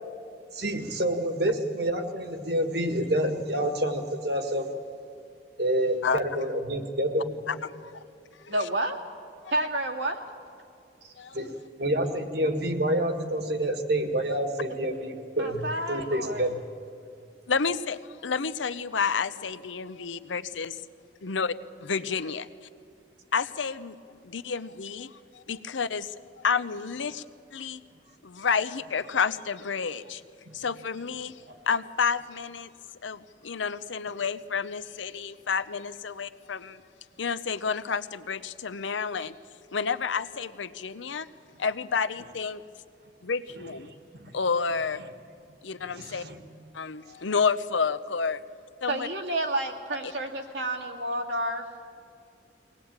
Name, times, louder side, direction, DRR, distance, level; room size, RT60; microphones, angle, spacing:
voice 1, 0.5-4.7 5.6-7.4 11.3-11.5 11.8-16.6 30.5-30.6 31.5-31.6 44.2-44.4 45.9-46.4, right 1 dB, 60° right, 7 dB, 1.8 m, -28 dB
voice 2, 7.5-7.9 8.4-8.7 11.2-11.4 17.5-20.8 21.2-21.5 21.8-22.5 23.3-27.2 27.5-27.8 28.2-30.2 30.5-32.7 33.0-36.8 37.2-39.3 39.7-41.3 41.6-42.6 43.2-43.9 44.3-45.0 45.6-46.2 46.7-48.4 48.8-49.1 50.0-50.1, left 5 dB, 85° left, 13 dB, 0.7 m, -30 dB
voice 3, 8.5-9.0 9.5-10.2 11.0-11.1 15.4-16.5 48.9-51.6, right 1 dB, 80° right, 2 dB, 2.2 m, -30 dB
22.5 x 18.5 x 8.8 m, 2.5 s
head